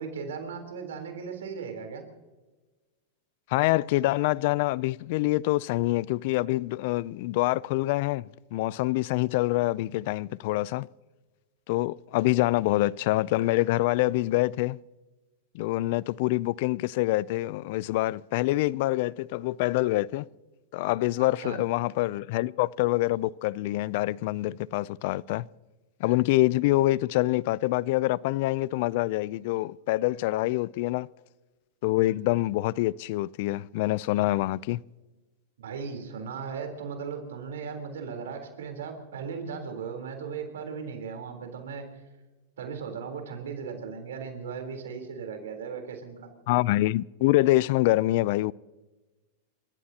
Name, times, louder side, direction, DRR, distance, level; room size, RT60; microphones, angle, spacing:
voice 1, 0.0-2.1 21.2-21.6 35.6-41.9 42.6-46.3, right 6 dB, 85° right, 3.7 m, -37 dB
voice 2, 3.5-10.9 11.7-14.8 15.5-20.2 20.7-25.5 26.0-31.1 31.8-34.8 46.5-48.5, left 18 dB, 60° left, 0.4 m, -26 dB
29.0 x 15.0 x 2.9 m
hypercardioid pair, 125°, 0 cm